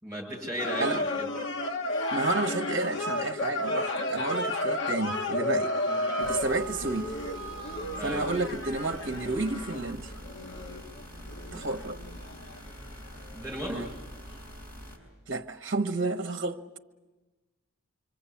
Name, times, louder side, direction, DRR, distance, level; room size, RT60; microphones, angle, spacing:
voice 1, 0.0-1.3 5.9-6.0 8.0-8.3 13.3-13.9, equal, 15° right, 8.0 m, -36 dB
sound 1, 0.6-14.0 14.2-14.4, left 1 dB, 60° left, 1.2 m, -33 dB
voice 2, 2.1-5.7 6.2-7.1 8.0-10.1 11.5-12.0 13.7-13.9 15.3-16.6, right 2 dB, 60° right, 1.2 m, -30 dB
sound 2, 6.2-15.0, equal, 10° left, 5.8 m, -45 dB
25.5 x 25.5 x 8.5 m
head